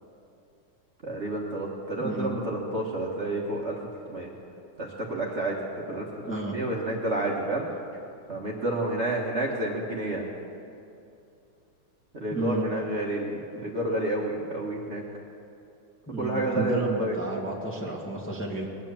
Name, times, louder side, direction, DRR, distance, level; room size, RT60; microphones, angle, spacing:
voice 1, 1.0-4.3 4.8-5.6 5.9-7.7 8.3-10.3 12.2-15.0 16.2-17.2, right 2 dB, 35° right, -3 dB, 1.5 m, -30 dB
voice 2, 2.0-2.3 6.2-6.6 12.3-12.7 16.1-18.7, right 2 dB, 5° left, -2 dB, 1.6 m, -32 dB
21.0 x 9.2 x 7.1 m, 2.6 s
omnidirectional pair, 2.3 m